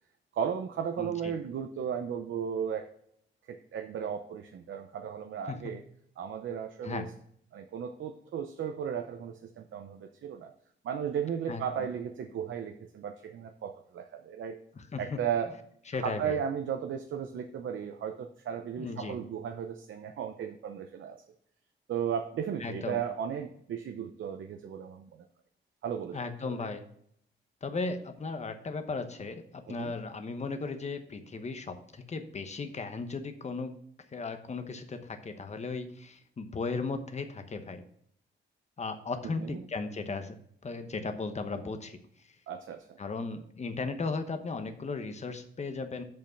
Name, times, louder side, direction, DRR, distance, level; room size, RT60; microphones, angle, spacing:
voice 1, 0.3-2.9 3.5-5.8 6.2-7.1 7.5-10.5 10.8-14.6 15.0-15.5 16.0-21.2 21.9-25.1 25.8-26.7 29.7-29.9 39.2-39.6 42.5-43.0, right 8 dB, 75° right, 6 dB, 0.7 m, -35 dB
voice 2, 1.0-1.3 5.5-5.6 6.8-7.1 11.5-11.6 14.8-15.2 15.9-16.4 18.8-19.2 22.6-23.0 26.1-26.8 27.6-33.7 34.1-37.8 38.8-40.4 40.6-42.0 43.0-46.0, left 4 dB, 35° left, 8 dB, 1.0 m, -36 dB
7.1 x 5.5 x 5.7 m, 0.67 s
wide cardioid pair, 130°, 20 cm